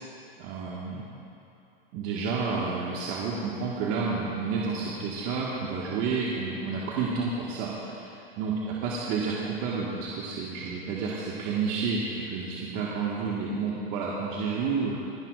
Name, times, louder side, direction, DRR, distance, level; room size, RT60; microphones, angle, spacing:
voice 1, 0.4-1.1 1.9-8.5 8.8-15.0, right 5 dB, 50° right, -5 dB, 1.7 m, -30 dB
26.5 x 11.0 x 2.5 m, 2.8 s
hypercardioid pair, 120°, 30 cm